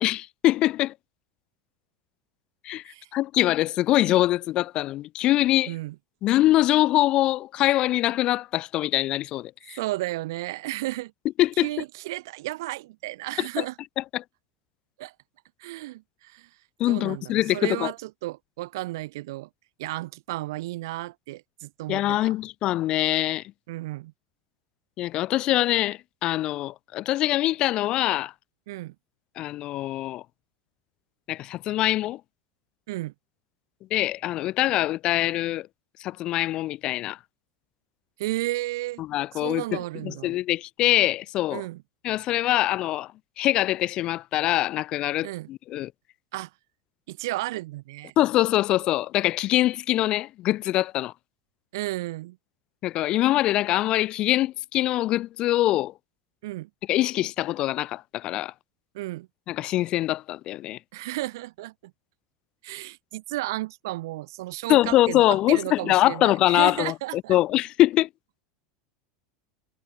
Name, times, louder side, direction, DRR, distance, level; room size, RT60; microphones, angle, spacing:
voice 1, 0.0-0.9 2.6-2.8 3.1-5.7 6.2-9.8 11.4-11.7 13.4-13.6 14.1-14.2 16.8-17.9 21.9-23.4 25.0-28.3 29.4-30.2 31.3-32.2 33.9-35.7 36.0-37.2 39.0-41.6 42.0-43.1 43.4-45.9 48.2-51.1 52.8-55.9 56.9-58.5 59.5-60.8 64.7-68.1, left 15 dB, 50° left, 1.1 m, -23 dB
voice 2, 9.8-11.1 11.6-13.7 15.0-15.1 15.6-16.5 16.9-19.5 19.8-22.3 23.7-24.1 28.7-28.9 32.9-33.1 38.2-39.0 39.3-40.4 41.5-41.8 45.2-45.5 46.3-46.5 47.1-48.1 51.7-52.4 56.4-56.7 58.9-59.3 60.9-61.9 62.6-67.4, right 18 dB, 70° right, 3.9 m, -33 dB
hypercardioid pair, 95°, 2 cm